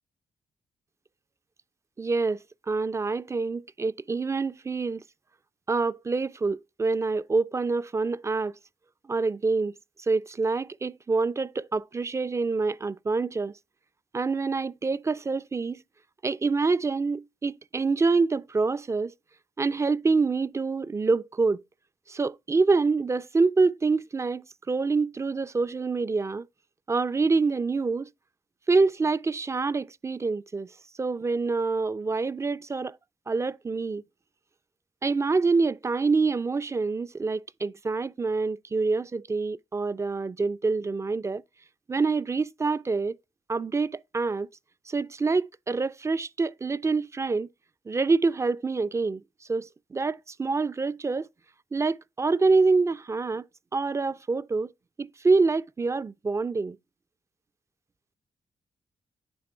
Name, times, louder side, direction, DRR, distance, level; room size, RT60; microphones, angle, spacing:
voice 1, 2.0-2.4 2.7-5.0 5.7-8.5 9.1-9.7 10.0-13.5 14.1-15.8 16.2-19.1 19.6-21.6 22.1-26.5 26.9-28.1 28.7-30.7 31.0-33.0 33.3-34.0 35.0-41.4 41.9-43.2 43.5-44.5 44.9-47.5 47.9-49.2 49.5-51.3 51.7-53.5 53.7-54.7 55.0-56.8, right 4 dB, 25° right, 0.3 m, -26 dB
9.5 x 3.6 x 4.4 m
cardioid pair, 60°, 12 cm